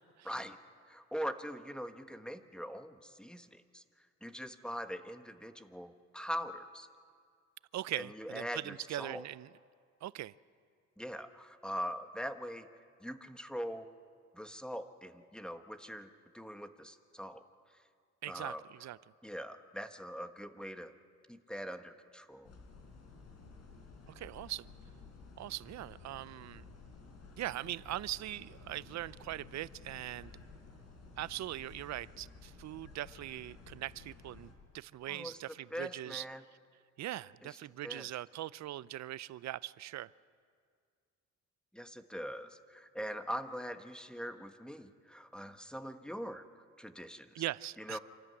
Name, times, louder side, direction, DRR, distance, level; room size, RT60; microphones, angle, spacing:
voice 1, 0.3-0.6 0.9-3.8 4.2-6.9 8.0-9.2 11.0-12.7 13.0-13.9 14.3-16.1 16.3-17.4 18.3-18.6 19.2-20.9 21.3-22.5 35.1-35.4 35.7-36.4 37.4-37.5 37.8-38.1 41.7-47.4 47.8-48.0, equal, 5° left, 8 dB, 1.3 m, -42 dB
voice 2, 7.7-9.5 10.0-10.3 18.2-19.0 24.2-24.7 25.4-26.6 27.4-30.3 31.2-36.2 37.0-40.1 47.3-48.0, right 14 dB, 65° right, 20 dB, 0.5 m, -41 dB
sound 1, 22.4-34.5, left 4 dB, 55° left, 4.7 m, -54 dB
26.5 x 13.5 x 9.6 m, 2.1 s
cardioid pair, 90°, 30 cm